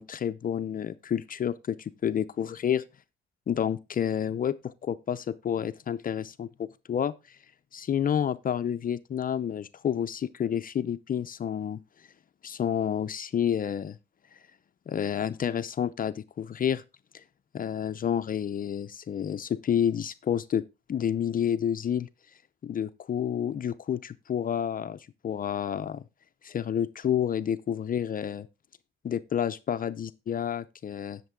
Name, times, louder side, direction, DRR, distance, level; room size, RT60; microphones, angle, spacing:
voice 1, 0.0-2.8 3.5-7.4 7.7-11.8 12.4-14.0 14.3-14.4 14.9-16.8 17.1-17.2 17.5-20.6 20.9-22.1 22.6-26.0 26.4-28.5 29.0-31.2, left 9 dB, 45° left, 0.6 m, -29 dB
10.5 x 6.7 x 3.7 m
cardioid pair, 90°, 20 cm